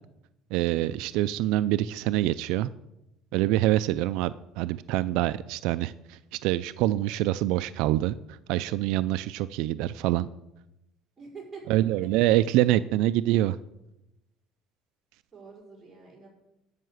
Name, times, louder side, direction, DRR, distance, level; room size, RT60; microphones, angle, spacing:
voice 1, 0.5-2.7 3.3-10.3 11.7-13.6, right 15 dB, 75° right, 14 dB, 0.3 m, -25 dB
voice 2, 11.2-11.8 12.4-12.6 15.3-16.3, right 4 dB, 15° right, -4 dB, 5.1 m, -45 dB
12.5 x 5.7 x 7.9 m, 0.89 s
cardioid pair, 145°, 0 cm